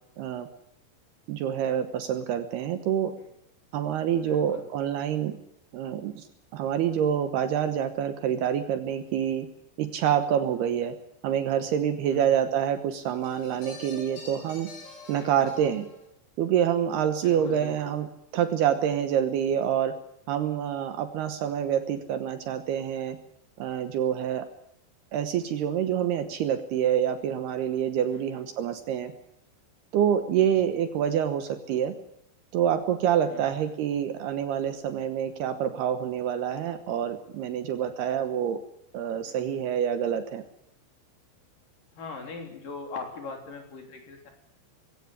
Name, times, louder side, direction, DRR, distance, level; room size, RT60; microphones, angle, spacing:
voice 1, 0.2-0.5 1.3-3.1 3.7-5.4 5.7-6.3 6.5-9.5 9.8-11.0 11.2-14.7 15.1-15.9 16.4-18.1 18.3-20.0 20.3-23.2 23.6-24.5 25.1-29.1 29.9-32.0 32.5-38.6 38.9-40.4, right 9 dB, 70° right, 9 dB, 2.8 m, -27 dB
voice 2, 4.2-4.6 12.1-12.3 15.2-15.5 17.2-17.9 30.4-30.6 33.3-33.6 39.2-39.6 42.0-44.3, left 4 dB, 50° left, 3 dB, 4.9 m, -41 dB
sound 1, 13.2-16.1, left 4 dB, 75° left, 7.7 m, -46 dB
21.5 x 17.0 x 9.9 m, 0.77 s
omnidirectional pair, 5.4 m